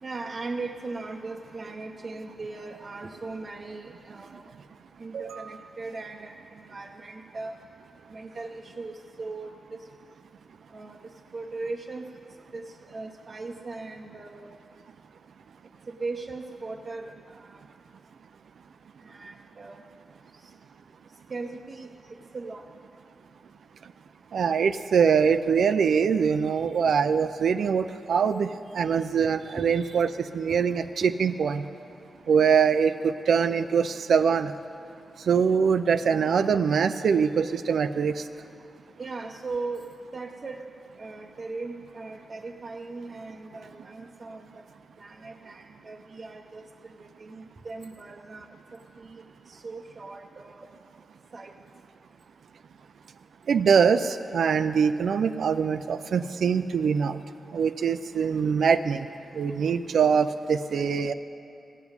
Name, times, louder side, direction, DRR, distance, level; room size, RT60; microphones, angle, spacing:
voice 1, 0.0-4.5 5.0-7.6 8.1-8.9 9.2-9.9 10.7-12.0 12.5-14.5 15.9-17.7 19.0-19.8 20.3-20.4 21.3-22.7 26.9-27.0 29.2-29.7 30.5-30.6 39.0-40.6 41.0-44.6 45.0-50.7 51.3-51.5, right 3 dB, 35° right, 1 dB, 0.7 m, -39 dB
voice 2, 5.1-5.5 24.3-30.8 31.2-31.6 32.3-34.5 35.3-38.2 53.5-57.2 57.5-59.1 59.3-61.1, right 6 dB, 75° right, 10 dB, 0.4 m, -23 dB
16.5 x 7.2 x 9.6 m, 2.5 s
wide cardioid pair, 135°, 0 cm